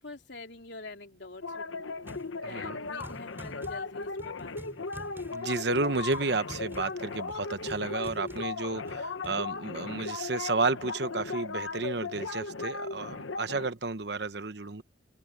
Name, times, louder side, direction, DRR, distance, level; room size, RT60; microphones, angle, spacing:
voice 1, 0.0-1.9 2.4-4.8, left 2 dB, 65° left, 3.4 m, -45 dB
sound 1, 1.4-13.7, left 4 dB, 85° left, 1.0 m, -37 dB
sound 2, 2.0-2.4 2.6-9.4, equal, 10° right, 5.4 m, -49 dB
voice 2, 2.4-2.8 5.3-14.8, right 3 dB, 60° right, 1.0 m, -32 dB
open air
head